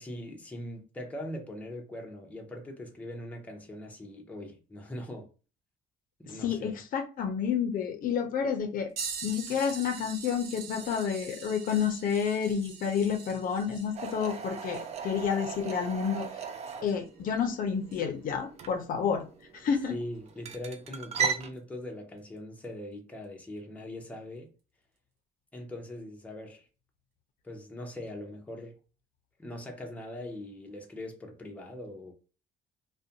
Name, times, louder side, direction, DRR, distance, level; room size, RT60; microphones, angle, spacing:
voice 1, 0.0-5.3 6.2-6.7 19.9-24.5 25.5-26.7 27.4-28.8 29.4-32.1, left 1 dB, 10° left, 0.6 m, -41 dB
voice 2, 6.3-8.9 9.2-16.4 16.8-19.3 19.5-20.0, left 7 dB, 55° left, 0.5 m, -30 dB
sound 1, 9.0-17.2 17.9-18.0 20.3-20.4 21.4-21.6 22.6-22.7, right 5 dB, 70° right, 0.9 m, -44 dB
sound 2, 14.0-21.5, right 6 dB, 40° right, 0.4 m, -37 dB
2.4 x 2.1 x 2.7 m
cardioid pair, 110°, 17 cm